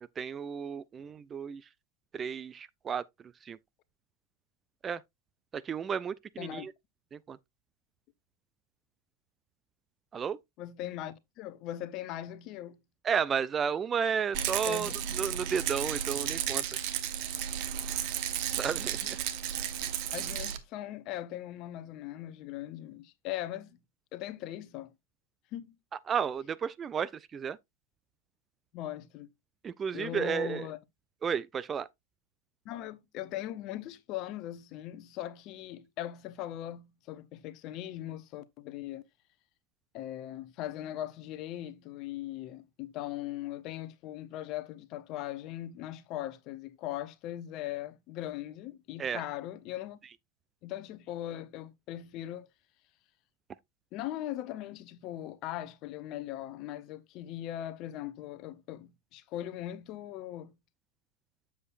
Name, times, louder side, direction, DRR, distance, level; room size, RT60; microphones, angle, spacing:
voice 1, 0.2-1.7 2.1-3.1 3.4-3.6 4.8-5.0 5.5-6.7 7.1-7.4 10.1-10.4 13.0-16.6 18.6-19.2 26.1-27.6 29.6-30.7 31.2-31.9 49.0-49.2, right 7 dB, 20° right, 0.3 m, -33 dB
voice 2, 10.6-12.8 14.6-15.2 20.1-23.8 24.1-24.9 25.5-25.8 28.7-29.3 29.9-30.8 32.6-39.0 39.9-50.0 50.6-52.5 53.9-60.6, left 13 dB, 40° left, 0.9 m, -40 dB
Rattle, 14.3-20.6, right 10 dB, 45° right, 1.1 m, -33 dB
7.8 x 7.3 x 2.5 m
figure-of-eight pair, 90°, 0 cm